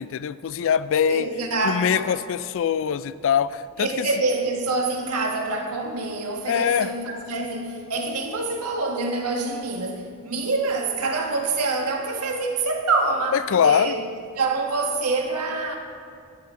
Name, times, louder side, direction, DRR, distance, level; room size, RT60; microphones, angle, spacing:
voice 1, 0.0-1.3 1.6-4.1 6.5-6.9 13.3-13.9, left 8 dB, 60° left, 15 dB, 0.3 m, -23 dB
voice 2, 1.1-2.2 3.8-14.0 14.3-15.8, right 3 dB, 90° right, 2 dB, 1.4 m, -26 dB
11.5 x 11.0 x 3.7 m, 2.3 s
head